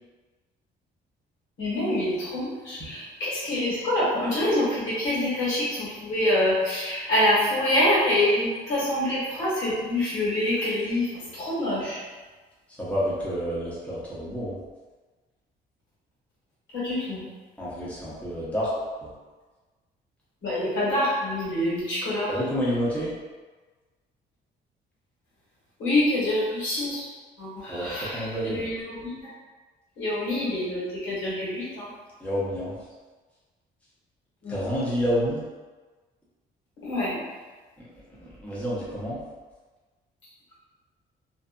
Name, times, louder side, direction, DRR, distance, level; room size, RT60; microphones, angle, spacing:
voice 1, 1.6-12.0 16.7-17.2 20.4-22.3 25.8-27.1 27.4-29.1 30.0-31.9 34.4-34.6 36.8-37.2, left 1 dB, 80° left, -8 dB, 1.3 m, -26 dB
voice 2, 12.8-14.6 17.6-18.7 19.0-19.1 22.3-23.1 27.7-28.7 32.2-32.8 34.5-35.4 37.8-37.9 38.2-39.2, equal, 5° left, -9 dB, 0.9 m, -29 dB
2.6 x 2.4 x 2.2 m, 1.3 s
cardioid pair, 90°, 20 cm